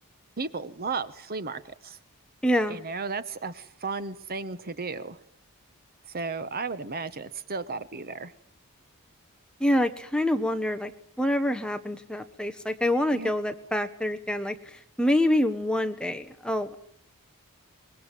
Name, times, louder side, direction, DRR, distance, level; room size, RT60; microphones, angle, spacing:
voice 1, 0.4-2.0 2.7-5.2 6.1-8.3 13.1-13.3, right 4 dB, 45° right, 13 dB, 1.2 m, -34 dB
voice 2, 2.4-2.8 9.6-10.9 11.2-14.6 15.0-16.8, left 1 dB, 5° left, 7 dB, 1.4 m, -26 dB
24.0 x 21.5 x 9.3 m, 0.64 s
head